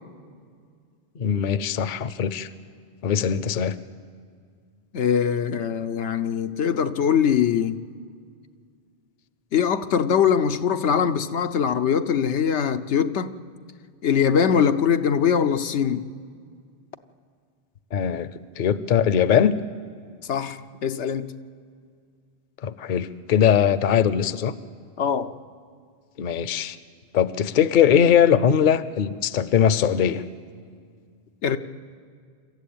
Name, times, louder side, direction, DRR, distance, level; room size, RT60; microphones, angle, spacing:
voice 1, 1.2-2.5 3.0-3.8 17.9-18.3 18.6-19.6 22.6-24.5 26.2-26.8 27.1-30.2, left 8 dB, 50° left, 0.7 m, -20 dB
voice 2, 4.9-7.8 9.5-13.4 14.0-16.1 20.3-21.3 25.0-25.3 31.4-31.6, left 7 dB, 90° left, 1.1 m, -22 dB
27.0 x 14.0 x 8.7 m
omnidirectional pair, 1.1 m